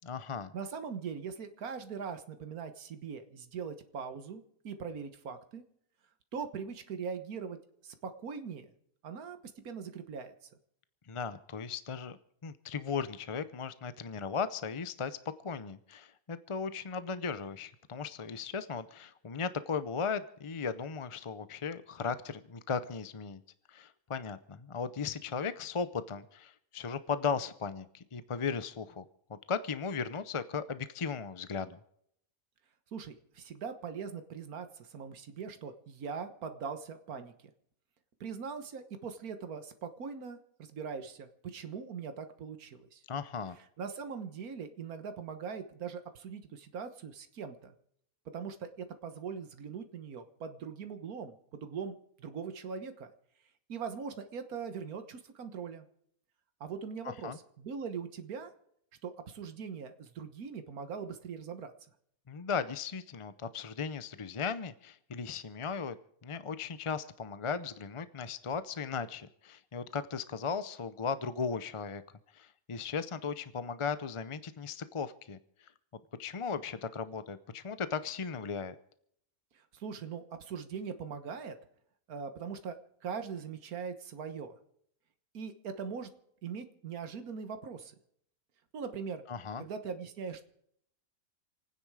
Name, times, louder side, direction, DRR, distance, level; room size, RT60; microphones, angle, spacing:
voice 1, 0.0-0.5 11.1-12.2 12.4-15.2 15.4-23.4 23.7-29.0 29.3-31.8 43.1-43.6 57.0-57.4 62.3-66.0 66.2-72.0 72.3-75.4 76.2-78.7 89.3-89.6, left 5 dB, 40° left, 13 dB, 0.4 m, -36 dB
voice 2, 0.5-5.6 6.3-7.6 7.8-8.7 9.0-9.4 9.6-10.3 32.9-37.3 38.2-43.0 43.8-47.8 48.3-53.1 53.7-55.9 56.6-58.5 59.0-61.7 79.5-81.6 82.1-84.6 85.3-86.1 86.4-88.0 88.7-89.2 89.6-90.4, right 6 dB, 85° right, 8 dB, 1.7 m, -41 dB
28.0 x 9.7 x 4.8 m, 0.70 s
omnidirectional pair, 1.5 m